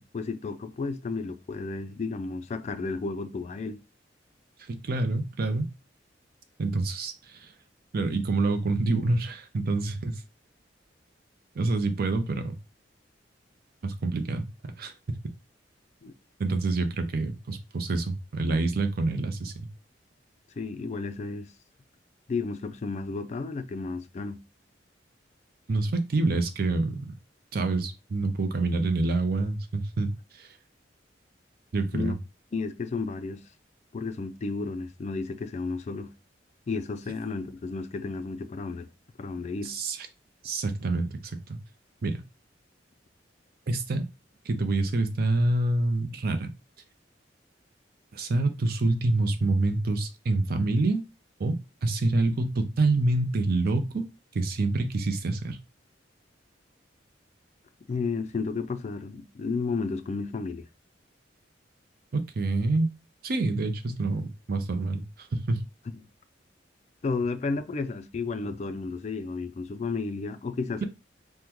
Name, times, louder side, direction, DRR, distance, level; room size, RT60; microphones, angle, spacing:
voice 1, 0.0-3.8 16.0-16.1 20.6-21.5 22.3-24.4 31.9-32.1 32.5-33.4 33.9-36.1 36.7-38.9 39.2-39.7 57.9-60.7 67.0-70.8, left 4 dB, 35° left, 0.3 m, -32 dB
voice 2, 4.7-5.7 6.6-7.5 7.9-10.2 11.6-12.6 13.8-14.5 14.8-14.9 16.4-19.7 25.7-27.1 27.5-30.6 31.7-32.2 39.6-40.1 40.4-41.2 41.5-41.6 42.0-42.2 43.7-44.0 44.5-46.5 48.1-51.0 51.4-54.1 54.3-55.6 62.1-62.9 63.2-65.6, right 2 dB, 55° right, 0.5 m, -27 dB
3.6 x 2.1 x 2.9 m
head